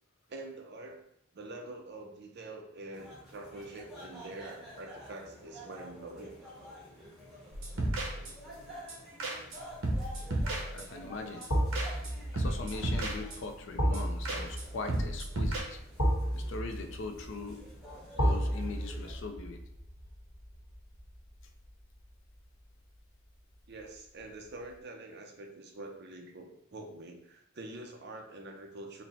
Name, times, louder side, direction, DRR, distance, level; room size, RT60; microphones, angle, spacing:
voice 1, 0.3-1.1 1.3-6.4 23.7-29.0, right 2 dB, 50° right, 3 dB, 0.6 m, -45 dB
sound 1, 2.9-19.1, equal, ahead, 1.0 m, -51 dB
sound 2, 7.5-8.6 8.9-9.0 9.2-9.6 9.8-11.1 11.4-11.5 11.7-12.1 12.4-13.6 13.9-14.0 14.3-14.6 14.9-15.6, right 1 dB, 70° right, 0.9 m, -33 dB
sound 3, 9.7-10.1 11.5-22.5 22.8-23.0, equal, 85° left, 1.2 m, -34 dB
voice 2, 10.7-11.4 12.3-15.8 16.3-17.6 18.2-19.6, left 3 dB, 60° left, 6 dB, 0.5 m, -40 dB
4.1 x 2.1 x 4.2 m, 0.74 s
head